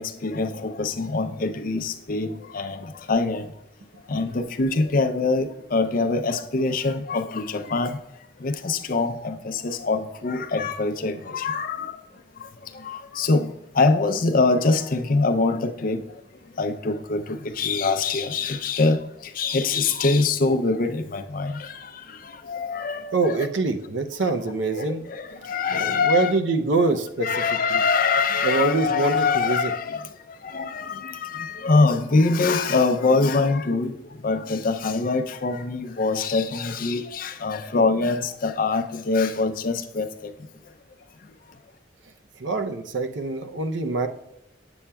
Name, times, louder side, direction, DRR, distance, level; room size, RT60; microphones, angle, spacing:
voice 1, 0.0-2.3 2.5-2.8 3.1-3.4 4.1-7.9 8.4-11.9 12.9-13.5 13.8-16.0 16.6-17.2 17.6-19.0 19.4-21.6 22.5-23.5 24.8-24.9 25.4-26.3 27.2-30.0 30.5-33.9 34.2-40.1, left 3 dB, 50° left, 8 dB, 0.5 m, -23 dB
voice 2, 23.1-25.0 25.7-27.3 27.7-27.8 28.4-29.7 42.4-44.1, right 3 dB, 90° right, 7 dB, 0.6 m, -24 dB
8.5 x 7.0 x 2.3 m, 0.84 s
head